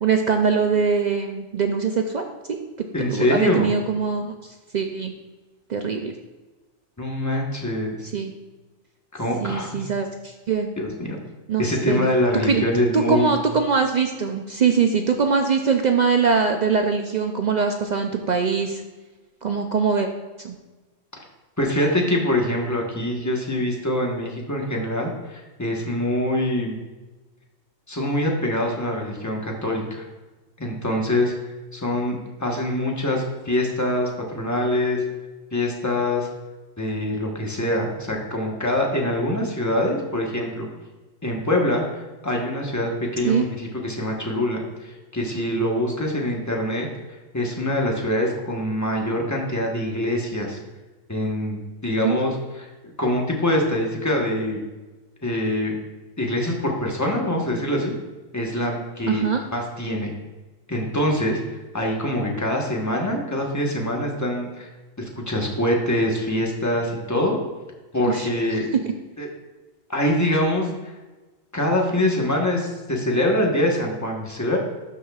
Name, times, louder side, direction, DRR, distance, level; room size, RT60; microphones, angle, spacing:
voice 1, 0.0-2.6 3.1-5.1 5.7-6.1 8.1-8.3 9.4-10.7 11.5-12.1 12.4-12.6 12.9-18.8 19.4-20.1 20.4-20.6 43.2-43.4 52.0-52.2 59.1-59.4 68.1-68.3 68.6-68.7, right 5 dB, 75° right, 5 dB, 0.4 m, -22 dB
voice 2, 2.9-3.7 7.0-8.0 9.1-9.9 10.8-11.2 11.6-13.4 21.6-26.7 27.9-30.1 30.6-31.3 31.7-35.0 35.5-36.3 36.8-40.7 41.2-46.9 47.3-50.6 51.1-52.7 53.0-54.6 55.2-55.7 56.2-57.9 58.3-59.2 59.5-60.1 60.7-61.4 61.7-64.7 65.0-67.4 67.9-68.7 69.2-69.3 69.9-70.9 71.5-74.6, left 1 dB, 15° left, 0 dB, 1.1 m, -24 dB
12.0 x 6.1 x 2.4 m, 1.2 s
omnidirectional pair, 1.4 m